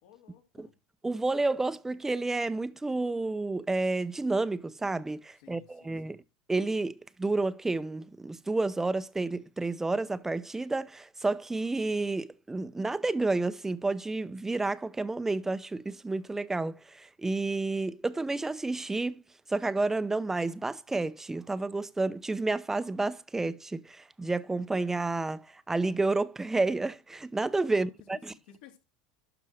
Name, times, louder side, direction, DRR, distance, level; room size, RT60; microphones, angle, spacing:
voice 1, 0.0-0.7 5.4-6.2 27.7-28.8, left 9 dB, 75° left, 2.8 m, -56 dB
voice 2, 1.0-6.2 6.5-19.2 19.5-28.3, right 3 dB, 10° right, 0.7 m, -30 dB
12.0 x 4.6 x 6.5 m
supercardioid pair, 115°, 4 cm